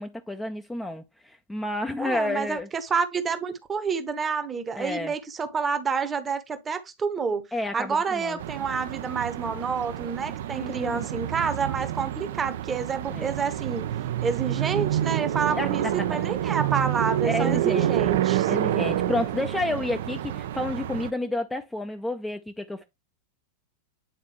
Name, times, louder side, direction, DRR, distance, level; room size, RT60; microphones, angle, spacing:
voice 1, 0.0-2.7 4.7-5.1 7.5-8.4 10.5-11.1 13.1-13.3 15.6-16.2 17.2-18.1 18.5-22.8, left 2 dB, 5° left, 0.5 m, -30 dB
voice 2, 2.0-7.4 7.7-13.9 14.2-15.8 16.1-18.5, right 5 dB, 20° right, 0.9 m, -28 dB
sound 1, 8.4-21.1, right 12 dB, 55° right, 0.4 m, -28 dB
8.9 x 4.0 x 3.0 m
figure-of-eight pair, 90°, 0 cm